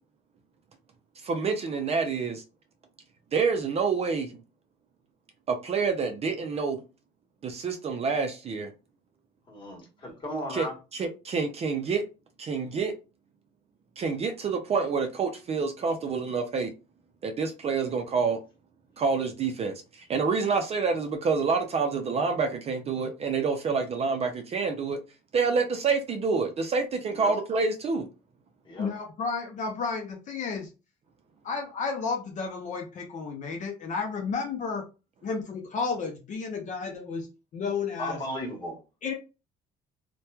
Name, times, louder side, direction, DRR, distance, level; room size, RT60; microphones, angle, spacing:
voice 1, 1.2-2.4 3.3-4.4 5.5-6.8 7.4-8.7 10.5-10.7 10.9-12.0 12.4-12.9 14.0-16.7 17.2-18.4 19.0-25.0 25.3-28.1, right 5 dB, 35° right, 0.4 m, -27 dB
voice 2, 9.5-10.7 27.1-27.3 28.7-28.9 38.0-38.8, equal, 30° left, 1.3 m, -35 dB
voice 3, 28.8-30.7 31.4-34.8 35.2-38.2 39.0-39.1, left 5 dB, 45° left, 0.6 m, -32 dB
2.9 x 2.2 x 2.2 m
cardioid pair, 110°, 17 cm